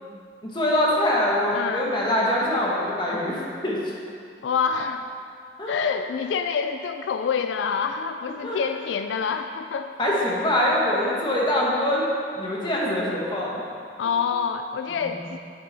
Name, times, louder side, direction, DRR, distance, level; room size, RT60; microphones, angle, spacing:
voice 1, 0.4-3.8 5.6-5.7 8.4-8.6 10.0-12.0 12.4-13.6 14.9-15.2, left 1 dB, 25° left, -4 dB, 1.2 m, -24 dB
voice 2, 1.5-1.9 4.4-5.1 5.7-9.9 14.0-15.4, left 6 dB, 85° left, 7 dB, 0.3 m, -27 dB
7.9 x 6.6 x 4.1 m, 2.4 s
head